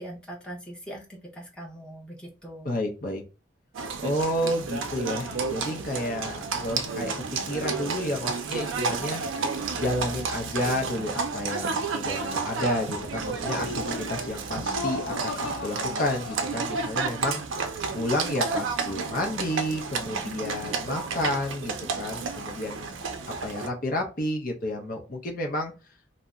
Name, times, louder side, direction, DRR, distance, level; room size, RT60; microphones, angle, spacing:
voice 1, 0.0-2.7, right 1 dB, 5° left, -3 dB, 0.7 m, -41 dB
voice 2, 2.6-3.2 4.0-9.2 9.7-17.4 17.9-23.0 23.4-25.7, left 1 dB, 45° left, 2 dB, 0.6 m, -31 dB
Livestock farm animals working animals, 3.7-23.7, right 4 dB, 75° right, 0.4 m, -31 dB
Laughter, 13.3-17.0, left 3 dB, 85° left, 0.6 m, -37 dB
2.7 x 2.0 x 3.5 m, 0.30 s
head